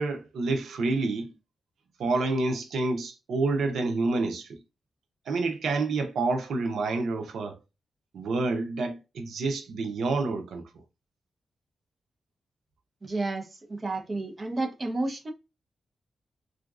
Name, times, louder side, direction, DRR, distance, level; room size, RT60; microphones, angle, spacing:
voice 1, 0.0-1.3 2.0-4.6 5.3-7.6 8.1-10.6, right 3 dB, 85° right, 0.5 m, -28 dB
voice 2, 13.0-15.3, right 2 dB, 35° right, 0.8 m, -31 dB
3.8 x 2.4 x 2.4 m
wide cardioid pair, 105°, 0 cm